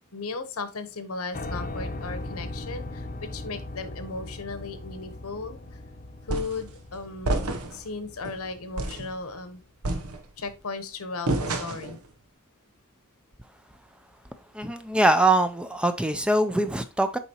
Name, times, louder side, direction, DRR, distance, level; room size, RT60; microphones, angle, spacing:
voice 1, 0.1-5.8 6.2-9.6 10.4-12.0, left 3 dB, 75° left, 1.0 m, -36 dB
Piano, 1.3-9.3, left 2 dB, 40° left, 0.7 m, -39 dB
sound 1, 6.3-6.7 7.2-7.9 8.2-8.4 8.8-9.1 9.8-10.5 11.3-12.0, right 2 dB, 85° right, 0.9 m, -29 dB
voice 2, 14.5-17.2, right 2 dB, 5° right, 0.4 m, -23 dB
7.0 x 4.8 x 2.9 m
head